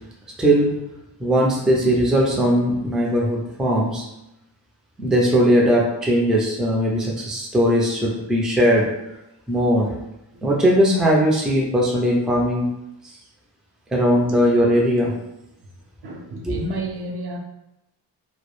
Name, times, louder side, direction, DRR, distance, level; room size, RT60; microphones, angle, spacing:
voice 1, 0.4-0.7 1.2-4.0 5.0-8.8 9.5-9.9 10.4-12.7 13.9-15.1 16.5-16.6, equal, ahead, -3 dB, 0.3 m, -19 dB
voice 2, 16.0-17.4, right 1 dB, 60° right, 1 dB, 0.5 m, -30 dB
2.2 x 2.0 x 3.0 m, 0.89 s
wide cardioid pair, 105°, 43 cm